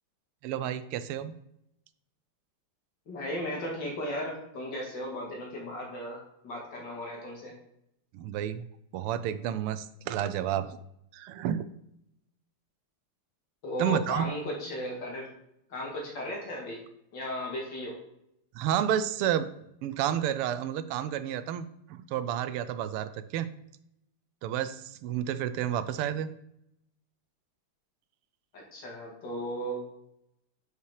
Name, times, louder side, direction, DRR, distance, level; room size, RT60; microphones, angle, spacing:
voice 1, 0.4-1.3 8.1-8.7 8.9-10.8 11.1-11.7 13.8-14.3 18.5-19.5 19.8-23.5 24.4-26.3, right 10 dB, 85° right, 13 dB, 1.5 m, -30 dB
voice 2, 3.1-7.5 13.6-15.3 15.7-16.8 17.1-18.0 28.5-29.8, equal, 55° left, -1 dB, 2.5 m, -36 dB
6.0 x 5.6 x 4.8 m, 0.78 s
omnidirectional pair, 2.4 m